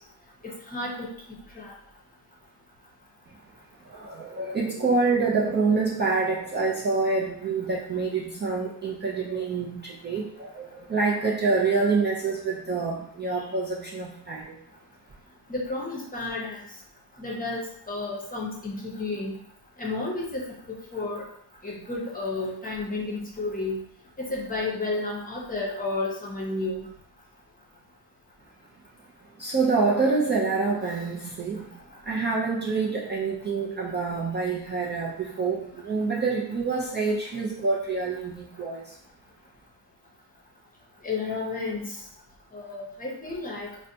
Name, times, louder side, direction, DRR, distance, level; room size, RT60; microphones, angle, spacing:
voice 1, 3.9-14.5 29.4-31.7 32.1-38.8, right 4 dB, 25° right, -5 dB, 0.5 m, -26 dB
voice 2, 15.5-16.6 17.2-17.6 17.9-19.3 19.8-20.4 20.9-21.2 21.6-23.8 24.3-26.9 41.0-41.9 42.5-43.7, left 3 dB, 20° left, -2 dB, 0.8 m, -31 dB
4.0 x 2.2 x 2.7 m, 0.64 s
cardioid pair, 115°, 43 cm